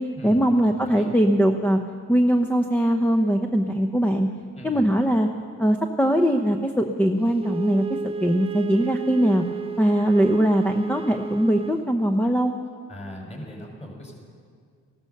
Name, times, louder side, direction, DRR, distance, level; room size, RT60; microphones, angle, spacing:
voice 1, 0.2-1.8 2.1-4.3 4.6-5.3 5.6-9.4 9.8-12.5, equal, 5° left, 4 dB, 0.8 m, -21 dB
voice 2, 0.8-1.1 4.6-4.9 12.9-14.1, equal, 20° left, 0 dB, 4.7 m, -39 dB
Wind instrument woodwind instrument, 7.4-11.9, right 5 dB, 20° right, 0.4 m, -33 dB
16.0 x 13.0 x 6.7 m, 2.1 s
cardioid pair, 90°, 30 cm